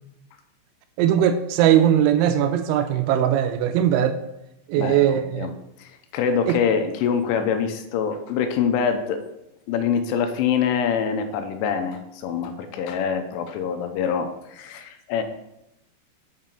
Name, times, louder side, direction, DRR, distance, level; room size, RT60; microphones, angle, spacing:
voice 1, 1.0-4.2 4.7-5.5 6.5-6.6, right 10 dB, 85° right, 9 dB, 2.8 m, -20 dB
voice 2, 4.8-5.5 5.8-9.2 9.7-15.2, left 7 dB, 90° left, 7 dB, 3.1 m, -25 dB
7.4 x 5.6 x 5.5 m, 0.86 s
omnidirectional pair, 5.6 m